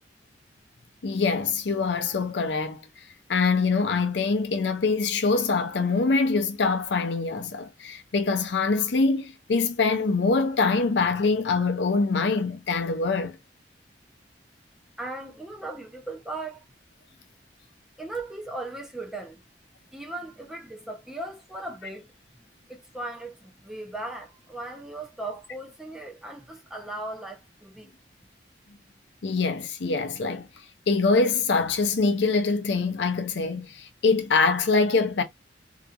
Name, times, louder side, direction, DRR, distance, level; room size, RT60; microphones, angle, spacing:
voice 1, 1.0-2.8 3.3-13.4 29.2-30.5 30.9-35.2, left 4 dB, 75° left, 0.6 m, -24 dB
voice 2, 15.0-16.6 18.0-19.4 19.9-22.1 22.7-27.9, right 2 dB, 5° right, 0.7 m, -37 dB
2.8 x 2.5 x 2.3 m
head